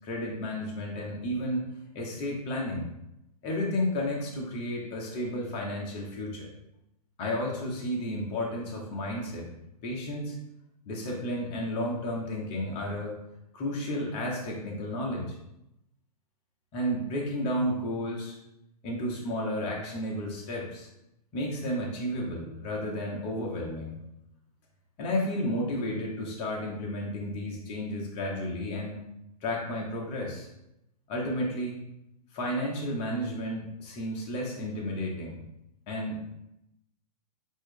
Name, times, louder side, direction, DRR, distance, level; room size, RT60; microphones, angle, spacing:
voice 1, 0.0-1.7 1.9-2.9 3.4-6.5 7.2-9.5 9.8-10.4 10.9-13.2 13.5-15.3 16.7-18.4 18.8-20.9 21.3-24.0 25.0-29.0 29.4-30.5 31.1-31.8 32.3-35.4 35.9-36.3, left 1 dB, 30° left, -2 dB, 1.0 m, -32 dB
6.1 x 2.7 x 2.2 m, 0.84 s
figure-of-eight pair, 110°, 20 cm